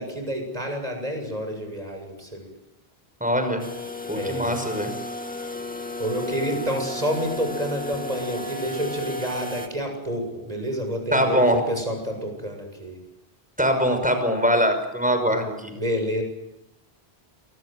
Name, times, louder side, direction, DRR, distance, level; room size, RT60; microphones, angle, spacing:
voice 1, 0.0-2.5 4.1-4.6 6.0-13.0 15.3-15.4 15.7-16.2, equal, 40° right, 4 dB, 7.7 m, -29 dB
voice 2, 3.2-3.6 4.1-4.9 11.1-11.6 13.6-15.7, equal, 10° right, 7 dB, 5.8 m, -22 dB
sound 1, 3.6-9.7, left 1 dB, 10° left, 2.4 m, -34 dB
28.0 x 22.0 x 7.9 m, 0.90 s
omnidirectional pair, 1.1 m